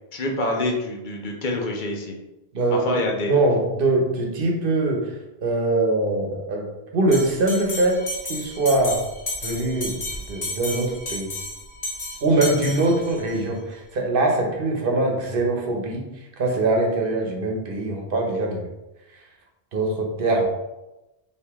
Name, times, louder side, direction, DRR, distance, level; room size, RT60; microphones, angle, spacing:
voice 1, 0.1-2.2 2.7-3.4, left 2 dB, 55° left, 1 dB, 0.9 m, -26 dB
voice 2, 2.5-3.0 3.3-5.1 5.4-6.7 6.9-8.0 8.3-9.0 9.4-11.3 12.2-16.1 16.4-18.6 19.7-20.4, right 2 dB, 60° right, 1 dB, 1.0 m, -22 dB
Bell, 7.1-13.3, left 1 dB, 40° left, 1.3 m, -33 dB
4.7 x 2.8 x 3.5 m, 1.0 s
omnidirectional pair, 1.0 m